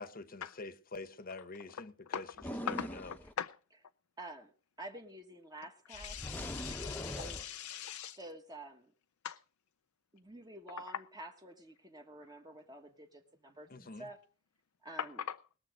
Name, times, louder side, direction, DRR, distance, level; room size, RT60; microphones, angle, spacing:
voice 1, 0.0-2.2 2.6-3.1 13.7-14.1, left 3 dB, 40° left, 1.1 m, -46 dB
sound 1, 2.4-3.3 5.9-7.4, equal, 10° left, 1.0 m, -41 dB
voice 2, 2.7-3.6 5.9-8.2 9.2-9.4 10.9-11.0 15.0-15.4, left 8 dB, 85° left, 0.5 m, -41 dB
voice 3, 4.2-4.5 4.8-7.4 8.2-8.9 10.1-14.2 14.8-15.2, right 1 dB, 20° right, 1.5 m, -50 dB
20.5 x 7.1 x 5.1 m
head